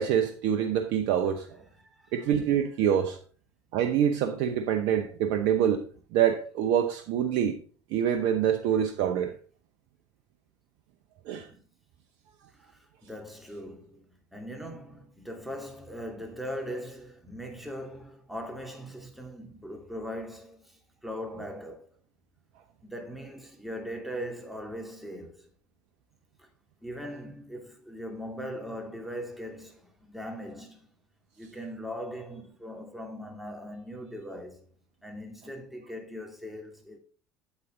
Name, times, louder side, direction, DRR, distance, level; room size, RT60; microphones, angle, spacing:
voice 1, 0.0-1.5 2.1-3.2 3.7-5.9 6.1-7.6 7.9-9.3 11.3-11.5, right 9 dB, 65° right, 0.8 m, -25 dB
voice 2, 1.8-2.3 11.5-11.6 12.5-21.9 22.8-25.5 26.4-26.5 26.8-30.9 31.4-34.7 35.0-37.0, equal, ahead, 2.7 m, -40 dB
8.2 x 8.1 x 3.8 m
hypercardioid pair, 60°, 10 cm